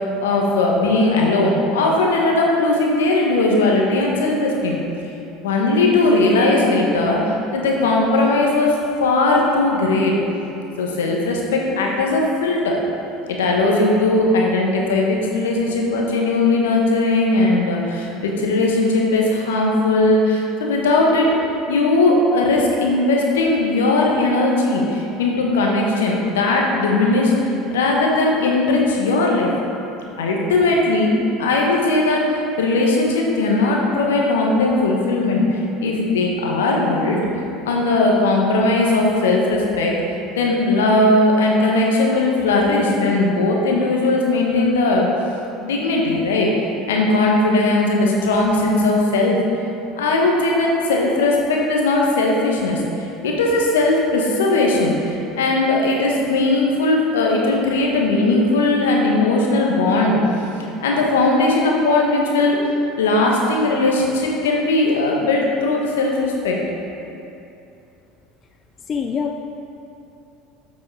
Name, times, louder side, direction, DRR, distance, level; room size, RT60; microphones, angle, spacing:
voice 1, 0.2-4.8 5.4-10.1 10.8-12.8 13.3-21.4 21.7-27.3 27.7-29.5 30.1-31.1 31.4-35.4 35.8-37.2 37.7-40.0 40.4-45.1 45.6-46.5 46.9-49.4 50.0-52.8 53.2-60.2 60.8-66.6, left 2 dB, 75° left, -1 dB, 1.3 m, -18 dB
voice 2, 68.9-69.4, left 6 dB, 35° left, 4 dB, 0.5 m, -24 dB
7.6 x 6.3 x 4.8 m, 2.8 s
hypercardioid pair, 75°, 0 cm